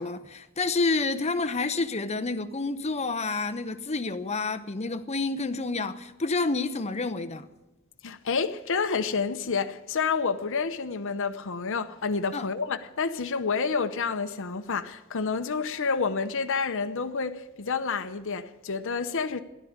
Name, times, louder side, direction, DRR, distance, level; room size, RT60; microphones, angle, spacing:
voice 1, 0.0-7.5 12.3-12.5, left 3 dB, 30° left, 0.8 m, -29 dB
voice 2, 8.0-19.4, left 5 dB, 60° left, 0.8 m, -29 dB
13.5 x 11.5 x 9.5 m
head